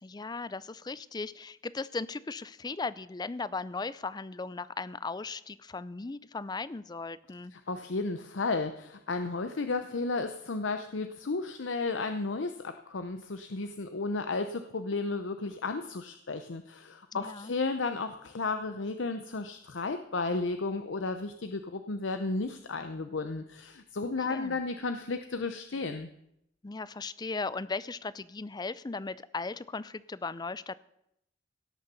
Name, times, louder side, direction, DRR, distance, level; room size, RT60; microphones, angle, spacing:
voice 1, 0.0-7.5 17.1-17.5 24.2-24.6 26.6-30.8, left 3 dB, 20° left, 18 dB, 0.4 m, -37 dB
voice 2, 7.5-26.1, left 3 dB, 80° left, 8 dB, 0.7 m, -33 dB
17.0 x 6.6 x 6.9 m, 0.78 s
head